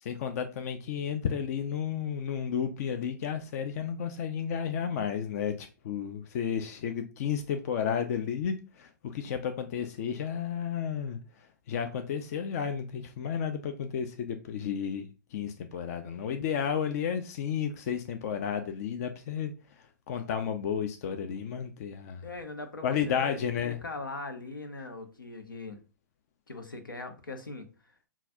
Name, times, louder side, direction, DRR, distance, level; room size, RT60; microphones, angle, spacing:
voice 1, 0.0-11.2 11.7-19.5 20.1-22.2 22.8-23.8, left 7 dB, 50° left, 0.5 m, -32 dB
voice 2, 22.2-25.8 26.5-27.7, left 3 dB, 90° left, 0.9 m, -41 dB
5.6 x 2.4 x 2.5 m
hypercardioid pair, 120°, 11 cm